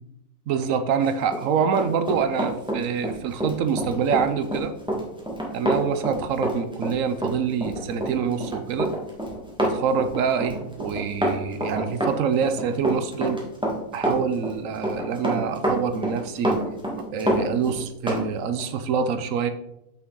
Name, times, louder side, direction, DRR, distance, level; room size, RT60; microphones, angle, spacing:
voice 1, 0.5-4.7 5.5-8.9 9.6-13.4 13.9-16.6 17.1-19.5, right 6 dB, 70° right, 10 dB, 1.0 m, -26 dB
Run, 1.2-18.3 18.6-18.7, right 1 dB, 5° right, 1.4 m, -27 dB
6.4 x 5.9 x 3.8 m, 0.84 s
omnidirectional pair, 1.5 m